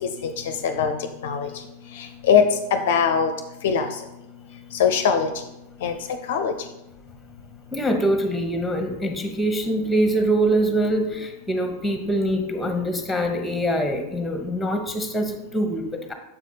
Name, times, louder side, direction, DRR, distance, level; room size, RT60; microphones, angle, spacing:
voice 1, 0.0-0.9 1.2-1.5 2.0-2.4 2.7-3.3 3.6-3.9 4.8-5.3 5.8-5.9 6.3-6.5, left 7 dB, 55° left, 8 dB, 0.5 m, -21 dB
voice 2, 7.7-16.1, right 1 dB, 5° left, 5 dB, 1.0 m, -24 dB
7.1 x 4.8 x 4.0 m, 0.92 s
figure-of-eight pair, 90°, 0 cm